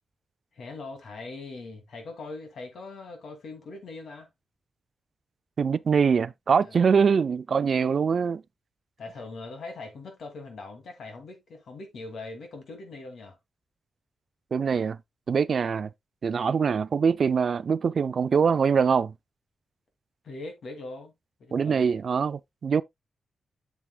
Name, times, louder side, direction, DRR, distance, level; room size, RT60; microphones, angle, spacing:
voice 1, 0.5-4.3 6.6-6.8 9.0-13.4 20.2-21.1 21.4-21.9, left 3 dB, 65° left, 2.6 m, -41 dB
voice 2, 5.6-8.4 14.5-15.0 15.3-15.9 16.2-19.1 21.5-22.8, right 6 dB, 45° right, 0.3 m, -23 dB
8.1 x 7.4 x 2.3 m
wide cardioid pair, 175°, 0 cm